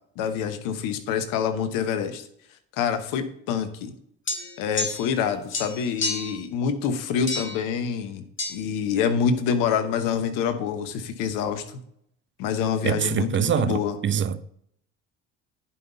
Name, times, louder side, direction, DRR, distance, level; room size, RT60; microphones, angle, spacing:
voice 1, 0.2-2.3 2.7-3.9 4.6-11.8 12.4-14.0, left 7 dB, 70° left, 1.1 m, -26 dB
sound 1, 4.3-5.2 5.5-6.4 7.3-7.6 8.4-8.5, left 3 dB, 35° left, 1.6 m, -30 dB
voice 2, 12.8-14.4, right 8 dB, 35° right, 0.6 m, -24 dB
10.5 x 5.5 x 4.0 m
hypercardioid pair, 60°, 33 cm